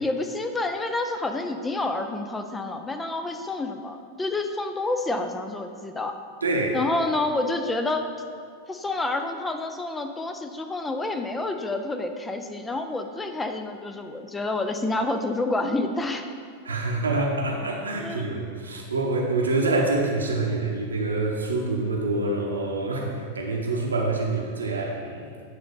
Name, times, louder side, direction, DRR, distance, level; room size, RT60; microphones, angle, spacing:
voice 1, 0.0-6.1 6.7-8.1 8.7-16.2 18.0-18.4, left 2 dB, 10° left, 6 dB, 0.4 m, -28 dB
voice 2, 6.4-6.8 16.6-25.2, right 2 dB, 75° right, 0 dB, 1.0 m, -26 dB
8.7 x 3.9 x 5.0 m, 2.2 s
figure-of-eight pair, 90°, 0 cm